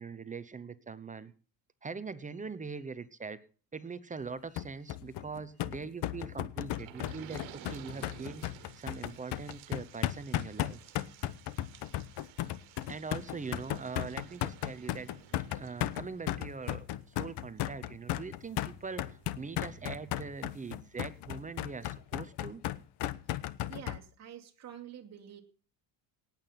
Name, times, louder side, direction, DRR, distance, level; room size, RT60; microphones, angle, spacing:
voice 1, 0.0-1.3 1.8-3.4 3.7-8.4 8.8-10.8 12.9-15.1 15.5-22.6, right 4 dB, 15° right, 14 dB, 0.8 m, -42 dB
sound 1, 4.6-24.0, left 14 dB, 60° left, 1.1 m, -35 dB
sound 2, 6.7-21.0 21.5-21.6 21.8-21.9, right 12 dB, 75° right, 1.8 m, -54 dB
voice 2, 23.7-25.4, right 9 dB, 35° right, 2 dB, 2.6 m, -48 dB
18.5 x 8.9 x 5.8 m, 0.40 s
cardioid pair, 145°, 47 cm